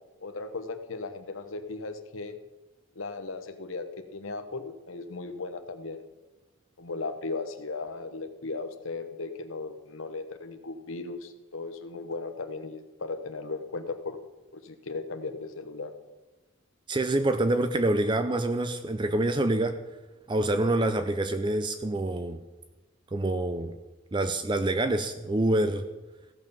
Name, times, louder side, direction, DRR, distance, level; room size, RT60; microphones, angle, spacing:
voice 1, 0.2-2.4 3.0-6.0 6.8-14.2 14.5-15.9, left 3 dB, 80° left, 8 dB, 1.0 m, -37 dB
voice 2, 16.9-19.8 20.3-22.4 23.1-23.7 24.1-25.8, right 1 dB, 25° right, 9 dB, 0.4 m, -26 dB
15.5 x 5.5 x 6.9 m, 1.1 s
head